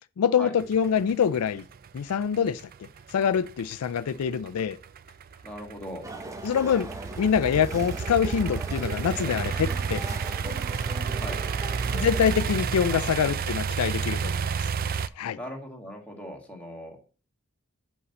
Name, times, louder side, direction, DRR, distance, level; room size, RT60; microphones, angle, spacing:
voice 1, 0.2-1.6 1.9-4.8 6.4-6.9 7.2-10.0 11.9-14.7 15.2-15.4, left 7 dB, 80° left, 0.4 m, -25 dB
sound 1, 0.6-15.1, right 6 dB, 40° right, 0.4 m, -31 dB
voice 2, 5.4-6.1 9.0-9.4 11.1-11.4 12.9-13.4 15.3-17.0, equal, 5° left, 1.8 m, -40 dB
sound 2, 6.0-12.3, right 1 dB, 15° right, 0.8 m, -39 dB
5.6 x 5.4 x 6.5 m
head